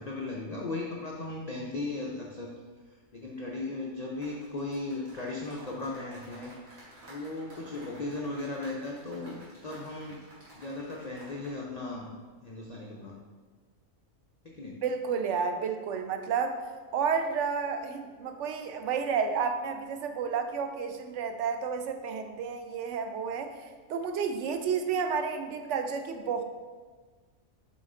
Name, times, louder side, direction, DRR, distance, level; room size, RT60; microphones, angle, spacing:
voice 1, 0.0-2.5 3.1-6.5 7.1-10.3 10.5-12.1 12.4-13.2 14.4-14.8, left 2 dB, 75° left, -1 dB, 0.3 m, -37 dB
sound 1, 4.2-11.6 11.8-12.1, right 1 dB, 85° right, 2.4 m, -53 dB
voice 2, 14.8-16.6 16.9-26.4, right 6 dB, 65° right, 6 dB, 0.8 m, -31 dB
5.7 x 4.5 x 3.7 m, 1.4 s
omnidirectional pair, 1.5 m